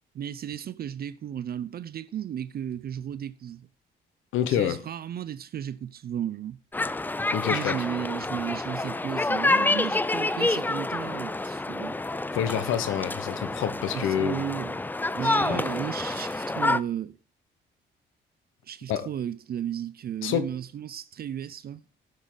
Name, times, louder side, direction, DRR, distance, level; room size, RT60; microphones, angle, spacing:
voice 1, 0.1-3.7 4.5-6.6 7.4-12.0 13.9-14.8 15.1-17.2 18.6-21.8, right 10 dB, 50° right, 0.5 m, -34 dB
voice 2, 4.3-4.8 7.3-7.8 12.3-14.5 15.4-15.6 18.9-19.1 20.2-20.4, left 10 dB, 90° left, 1.1 m, -27 dB
sound 1, 6.7-16.8, left 2 dB, 10° left, 0.4 m, -28 dB
16.0 x 7.2 x 3.8 m
cardioid pair, 90°, 20 cm